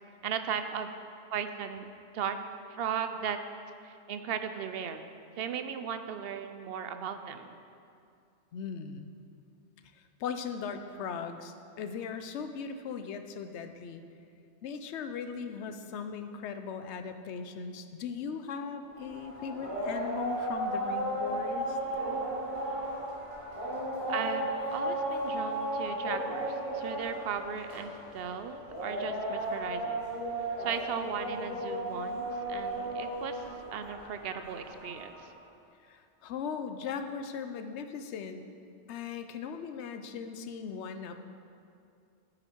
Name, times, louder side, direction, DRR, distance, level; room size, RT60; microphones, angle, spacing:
voice 1, 0.2-0.9 1.3-1.9 2.1-2.4 2.7-3.4 3.8-7.6 24.1-30.0 30.6-35.3, right 7 dB, 60° right, 9 dB, 0.7 m, -37 dB
voice 2, 8.5-9.1 10.2-14.0 14.6-21.8 35.8-38.5 38.9-41.2, left 6 dB, 70° left, 8 dB, 0.9 m, -38 dB
sound 1, 18.9-35.2, right 1 dB, 25° left, 2.6 m, -35 dB
8.9 x 8.9 x 4.6 m, 2.5 s
omnidirectional pair, 1.2 m